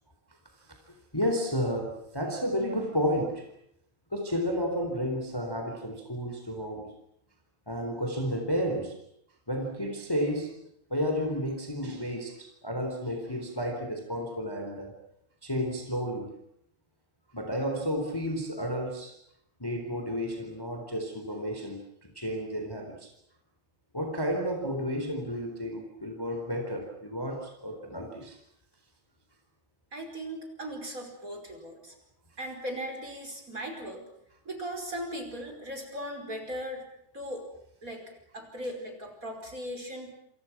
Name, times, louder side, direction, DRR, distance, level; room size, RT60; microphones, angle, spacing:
voice 1, 0.9-3.5 4.1-6.9 7.7-9.0 9.5-10.5 10.9-14.9 15.4-16.3 17.3-19.2 19.6-23.1 23.9-28.4, equal, 5° left, 3 dB, 3.7 m, -32 dB
voice 2, 29.9-31.9 32.4-34.0 34.5-36.8 37.1-37.5 37.8-38.0 38.3-40.1, equal, 25° right, 4 dB, 5.5 m, -38 dB
28.0 x 28.0 x 6.1 m, 0.73 s
omnidirectional pair, 3.3 m